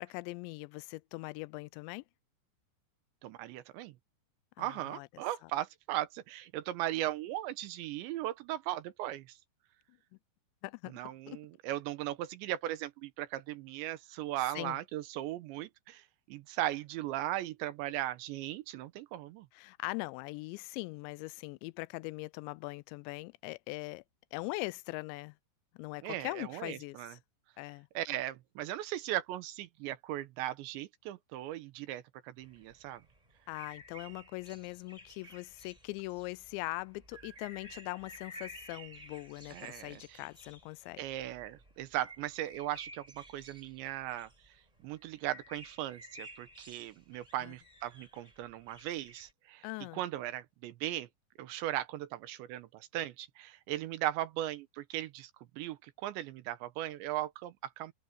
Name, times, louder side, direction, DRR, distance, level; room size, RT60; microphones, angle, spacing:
voice 1, 0.0-2.0 4.6-5.1 10.6-11.0 11.3-11.4 14.6-14.8 19.5-24.0 24.3-25.4 25.8-27.2 27.6-27.9 33.5-41.0 47.4-47.5 49.6-50.0, left 23 dB, 90° left, 2.8 m, -41 dB
voice 2, 3.2-3.9 4.6-9.4 10.9-19.5 26.0-27.2 27.9-33.0 39.5-40.2 41.0-44.3 44.8-49.7 49.9-51.1 51.4-57.9, right 14 dB, 85° right, 3.3 m, -38 dB
sound 1, 32.4-49.3, equal, 10° right, 4.8 m, -54 dB
omnidirectional pair, 5.0 m